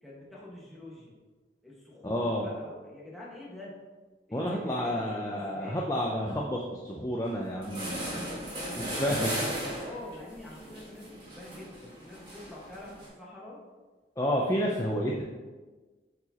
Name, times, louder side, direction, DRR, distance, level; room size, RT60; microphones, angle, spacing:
voice 1, 0.0-1.2 1.6-3.7 4.3-5.9 8.1-9.2 9.7-13.6, left 1 dB, ahead, -7 dB, 1.4 m, -46 dB
voice 2, 2.0-2.5 4.3-8.1 8.8-9.3 14.2-15.2, equal, 15° left, -2 dB, 0.5 m, -30 dB
sound 1, 7.3-7.4 7.6-13.1, right 1 dB, 30° right, 2.1 m, -37 dB
7.8 x 4.9 x 2.9 m, 1.3 s
head